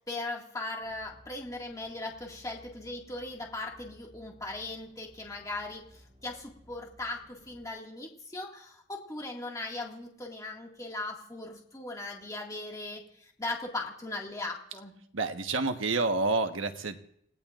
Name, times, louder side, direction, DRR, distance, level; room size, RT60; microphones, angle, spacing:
voice 1, 0.1-14.9, left 2 dB, 15° left, -1 dB, 2.0 m, -39 dB
sound 1, 0.8-7.7, equal, 40° right, 4.2 m, -58 dB
voice 2, 15.1-17.0, right 3 dB, 85° right, 6 dB, 1.3 m, -28 dB
29.0 x 18.0 x 2.5 m, 0.70 s
head